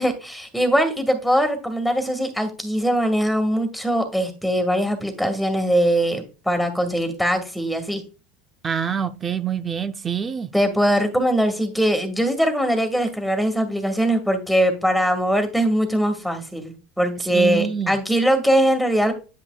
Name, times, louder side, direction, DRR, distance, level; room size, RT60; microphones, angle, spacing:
voice 1, 0.0-8.0 10.5-19.1, right 1 dB, 5° left, 1.9 m, -21 dB
voice 2, 8.6-10.5 17.3-17.9, right 7 dB, 30° right, 0.7 m, -25 dB
9.9 x 5.8 x 2.4 m
supercardioid pair, 105°, 0 cm